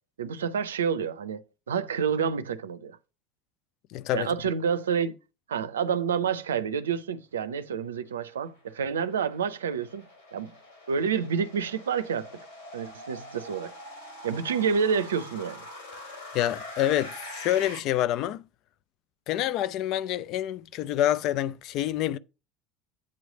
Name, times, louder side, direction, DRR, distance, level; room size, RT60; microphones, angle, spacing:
voice 1, 0.2-3.0 4.1-5.2 5.5-10.1 10.3-10.5 10.9-12.4 12.7-13.7 14.2-15.6, right 6 dB, 85° right, 0.5 m, -28 dB
voice 2, 3.9-4.3 16.3-18.4 19.3-22.2, left 12 dB, 55° left, 0.4 m, -27 dB
sound 1, 8.2-17.8, left 1 dB, 80° left, 4.1 m, -44 dB
8.6 x 3.2 x 6.2 m
hypercardioid pair, 75°, 0 cm